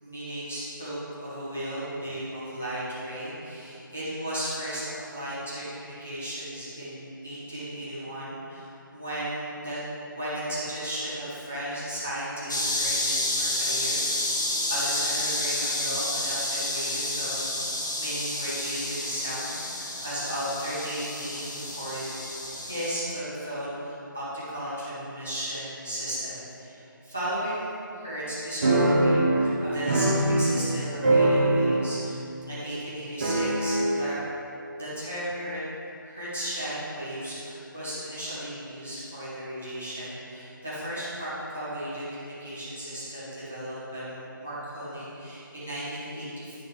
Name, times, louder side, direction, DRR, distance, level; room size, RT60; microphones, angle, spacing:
voice 1, 0.0-14.2 14.7-22.1 22.6-34.2 34.7-35.6 36.0-46.5, right 1 dB, 5° left, -12 dB, 0.3 m, -35 dB
sound 1, 12.5-22.9, left 1 dB, 60° left, 1.3 m, -30 dB
sound 2, 28.6-30.7 31.0-32.0 32.3-32.4 33.2-34.0, right 1 dB, 25° right, 1.0 m, -22 dB
9.8 x 5.8 x 3.3 m, 2.8 s
figure-of-eight pair, 175°, 11 cm